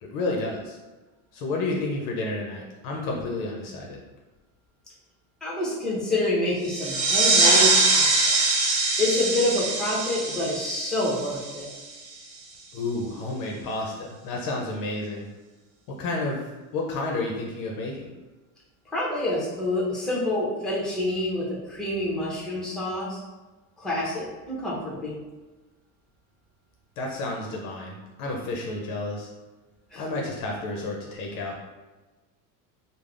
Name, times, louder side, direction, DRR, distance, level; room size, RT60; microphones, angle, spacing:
voice 1, 0.0-0.8 1.3-4.0 12.7-15.3 15.9-18.1 27.0-29.3 30.0-31.6, left 2 dB, 50° left, -1 dB, 0.6 m, -31 dB
voice 2, 5.4-8.4 9.0-11.7 18.9-23.2 23.8-25.1 29.9-30.0, left 1 dB, ahead, -6 dB, 0.7 m, -27 dB
sound 1, 6.6-12.0, right 3 dB, 70° right, 0.9 m, -23 dB
3.2 x 2.0 x 2.4 m, 1.2 s
supercardioid pair, 115°, 44 cm